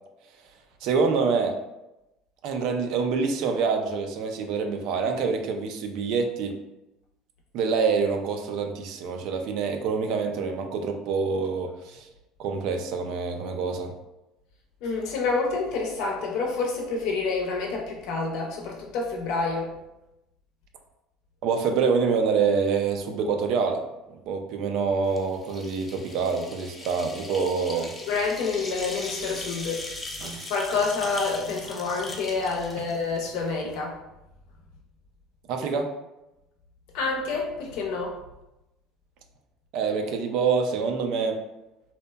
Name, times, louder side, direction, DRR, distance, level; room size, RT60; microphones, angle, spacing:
voice 1, 0.8-1.6 2.4-6.5 7.5-12.1 12.4-13.9 21.4-23.8 24.3-27.9 30.2-30.5 35.5-35.9 39.7-41.4, right 5 dB, 65° right, 4 dB, 0.3 m, -26 dB
voice 2, 14.8-19.7 28.1-29.9 30.5-34.0 36.9-38.2, left 4 dB, 70° left, 0 dB, 0.6 m, -28 dB
sound 1, 25.1-33.5, left 2 dB, 20° left, 0.4 m, -40 dB
2.7 x 2.1 x 2.2 m, 0.95 s
supercardioid pair, 110°, 0 cm